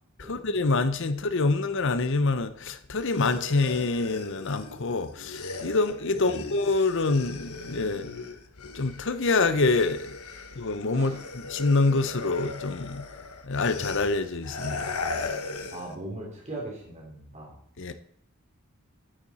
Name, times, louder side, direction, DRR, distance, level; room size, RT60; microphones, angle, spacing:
voice 1, 0.2-8.1 8.7-10.1 10.6-13.0 13.4-14.9 17.8-17.9, left 3 dB, 55° left, 0.8 m, -26 dB
sound 1, 2.9-9.2 9.4-16.0, left 3 dB, 85° left, 1.4 m, -38 dB
voice 2, 15.7-17.6, right 1 dB, 30° right, 3.3 m, -39 dB
10.0 x 8.7 x 4.3 m
head